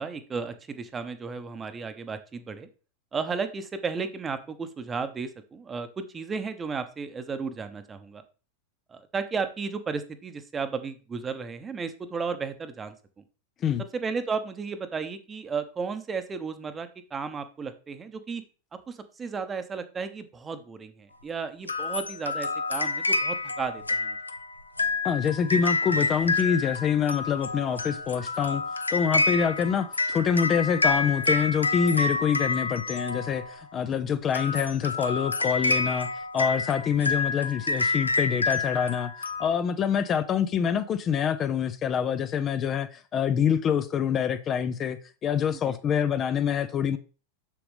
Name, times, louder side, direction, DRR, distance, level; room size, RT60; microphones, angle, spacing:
voice 1, 0.0-2.7 3.1-8.2 8.9-13.2 13.9-18.4 18.7-24.2 45.7-45.8, right 5 dB, 20° right, 0.9 m, -34 dB
sound 1, 21.7-33.6 34.2-39.5, left 3 dB, 80° left, 0.6 m, -28 dB
voice 2, 25.0-28.6 28.9-47.0, left 7 dB, 30° left, 0.5 m, -26 dB
7.2 x 6.9 x 3.3 m
figure-of-eight pair, 90°, 0 cm